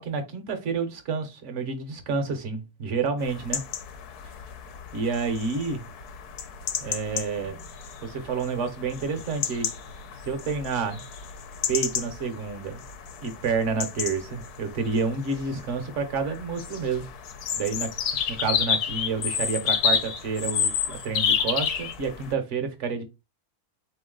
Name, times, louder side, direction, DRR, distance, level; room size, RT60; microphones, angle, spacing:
voice 1, 0.0-3.6 4.9-5.8 6.8-7.6 8.0-9.7 10.2-11.0 11.7-12.8 13.2-17.1 17.6-17.9 18.3-23.0, right 5 dB, 55° right, 1.1 m, -29 dB
sound 1, 3.2-22.3, left 7 dB, 90° left, 1.2 m, -31 dB
4.0 x 3.0 x 3.7 m
omnidirectional pair, 1.6 m